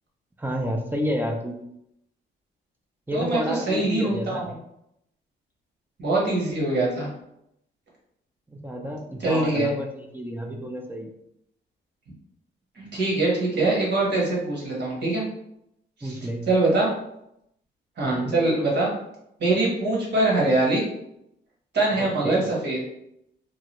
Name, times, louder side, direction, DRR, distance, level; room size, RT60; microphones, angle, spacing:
voice 1, 0.4-1.6 3.1-4.5 8.5-11.1 16.0-16.5 18.0-18.4 22.0-22.5, equal, 10° right, 0 dB, 0.5 m, -30 dB
voice 2, 3.1-4.4 6.0-7.1 9.2-9.7 12.8-15.2 16.0-16.1 16.5-16.9 18.0-18.9 19.4-20.8 21.7-22.8, right 2 dB, 60° right, -3 dB, 1.3 m, -23 dB
3.0 x 2.3 x 3.0 m, 0.79 s
cardioid pair, 90°, 20 cm